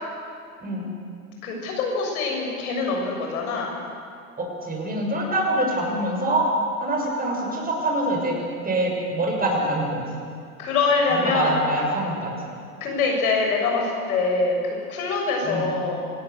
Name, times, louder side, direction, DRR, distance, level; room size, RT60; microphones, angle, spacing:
voice 1, 1.4-3.7 10.6-11.5 12.8-14.6 14.9-16.0, left 4 dB, 65° left, 0 dB, 6.7 m, -24 dB
voice 2, 4.4-6.5 6.8-8.4 8.6-10.0 11.1-12.3 15.4-15.7, right 1 dB, 20° right, -1 dB, 6.6 m, -25 dB
26.5 x 17.5 x 6.9 m, 2.3 s
figure-of-eight pair, 85°, 46 cm